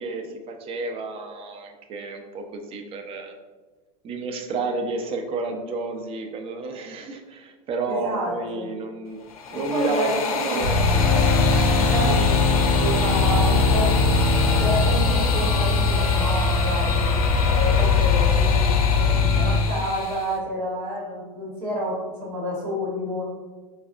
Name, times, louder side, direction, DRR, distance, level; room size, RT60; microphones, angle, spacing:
voice 1, 0.0-3.3 4.0-9.2 9.5-11.2 11.5-11.8, right 3 dB, 30° right, 4 dB, 0.4 m, -31 dB
voice 2, 7.9-8.7 9.5-10.7 11.7-14.2 14.6-17.1 17.4-23.2, equal, 90° right, -7 dB, 1.0 m, -29 dB
sound 1, 9.2-20.4, left 5 dB, 85° left, 0.5 m, -28 dB
sound 2, 10.6-19.6, left 4 dB, 25° left, 0.6 m, -21 dB
sound 3, 10.9-14.9, right 1 dB, ahead, 0.8 m, -26 dB
4.0 x 2.1 x 2.4 m, 1.3 s
hypercardioid pair, 110°, 19 cm